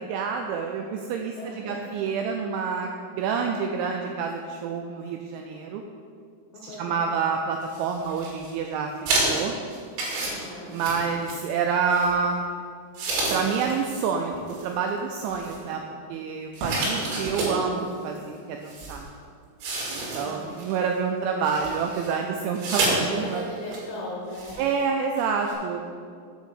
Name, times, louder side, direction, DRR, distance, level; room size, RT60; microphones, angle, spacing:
voice 1, 0.0-1.4 1.7-5.8 6.6-9.5 10.7-12.5 13.3-15.8 16.1-19.1 19.9-23.4 24.6-25.9, right 5 dB, 85° right, 3 dB, 2.7 m, -28 dB
voice 2, 1.4-1.9 6.5-7.1 10.2-10.8 17.3-17.7 20.2-20.5 23.1-24.6, left 2 dB, 80° left, -3 dB, 2.2 m, -38 dB
sound 1, 7.6-8.5 9.1-11.6 11.9-12.1 13.0-14.0 14.3-14.7 15.3-15.7 16.5-17.6 18.2-18.3 18.7-19.0 19.6-20.8 21.4-22.1 22.5-23.0 23.3-23.4 23.7-23.9 24.3-24.6 25.2-25.3 25.5-25.6, right 2 dB, 70° right, 4.4 m, -29 dB
9.0 x 4.9 x 7.1 m, 2.2 s
omnidirectional pair, 5.9 m